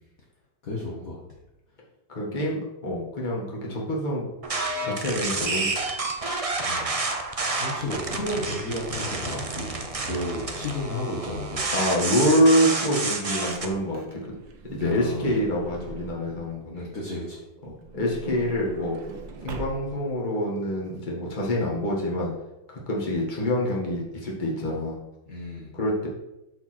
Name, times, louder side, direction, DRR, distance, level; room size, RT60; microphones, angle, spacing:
voice 1, 0.6-1.2 6.6-6.9 7.6-11.7 14.8-15.3 16.7-17.4 25.3-25.7, left 1 dB, 50° left, -3 dB, 1.9 m, -32 dB
voice 2, 2.1-4.2 4.8-5.7 11.7-14.3 14.7-16.9 17.7-19.0 19.4-22.3 22.7-25.0 25.7-26.1, equal, 25° left, -3 dB, 2.0 m, -26 dB
sound 1, 4.4-13.7, right 3 dB, 45° right, 0.4 m, -29 dB
Truck / Door, 13.4-16.6 17.6-20.2 20.9-21.0 21.1-21.3, right 4 dB, 85° right, 1.8 m, -42 dB
13.0 x 4.5 x 4.5 m, 0.97 s
omnidirectional pair, 2.0 m